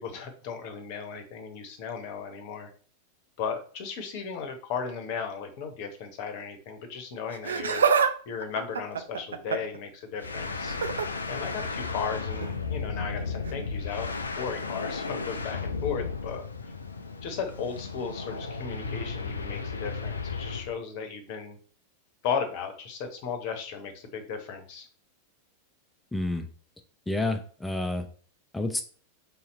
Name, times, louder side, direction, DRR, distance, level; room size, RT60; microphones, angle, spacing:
voice 1, 0.0-2.7 3.4-7.8 8.3-10.8 11.3-14.1 14.4-16.7 17.2-21.6 22.2-24.9, left 6 dB, 45° left, 7 dB, 0.9 m, -35 dB
Laughter, 7.3-8.1 8.4-9.8 10.7-11.1 12.4-12.5 13.5-13.6, right 6 dB, 70° right, 0.4 m, -26 dB
sound 1, 10.2-20.7, left 4 dB, 75° left, 0.4 m, -34 dB
voice 2, 26.1-26.5 27.1-28.1 28.5-28.8, left 2 dB, 5° left, 6 dB, 0.6 m, -29 dB
3.7 x 2.9 x 4.2 m, 0.44 s
figure-of-eight pair, 90°, 0 cm